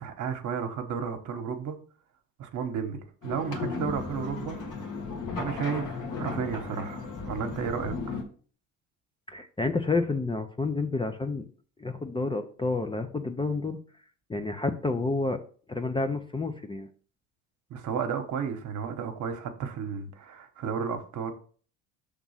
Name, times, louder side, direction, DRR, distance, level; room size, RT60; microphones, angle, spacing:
voice 1, 0.0-1.8 2.4-4.6 5.4-8.2 17.7-21.3, right 7 dB, 50° right, 1.2 m, -33 dB
sound 1, 3.2-8.2, left 4 dB, 55° left, 1.7 m, -35 dB
voice 2, 9.3-11.4 11.8-13.8 14.3-15.4 15.7-16.9, left 3 dB, 15° left, 0.6 m, -29 dB
6.0 x 3.6 x 5.6 m
supercardioid pair, 80°, 37 cm